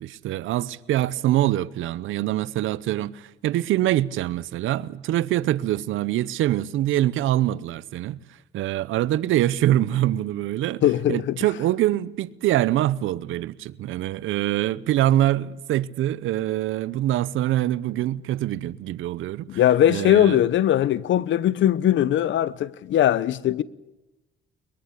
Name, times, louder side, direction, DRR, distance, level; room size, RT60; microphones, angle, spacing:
voice 1, 0.0-8.2 8.5-10.8 11.1-19.6 19.9-20.4, right 13 dB, 85° right, 0.9 m, -24 dB
voice 2, 10.8-11.3 19.5-23.6, left 11 dB, 70° left, 1.0 m, -20 dB
22.5 x 22.5 x 8.4 m
cardioid pair, 90°, 20 cm